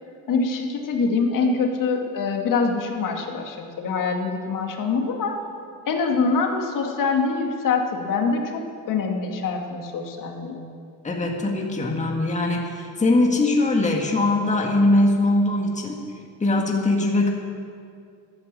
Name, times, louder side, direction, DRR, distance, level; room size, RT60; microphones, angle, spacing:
voice 1, 0.3-5.4 5.9-10.6, left 4 dB, 55° left, 3 dB, 2.2 m, -24 dB
voice 2, 11.0-16.0 16.4-17.3, left 2 dB, 20° left, 0 dB, 1.8 m, -21 dB
14.0 x 11.5 x 7.5 m, 2.3 s
cardioid pair, 135°, 39 cm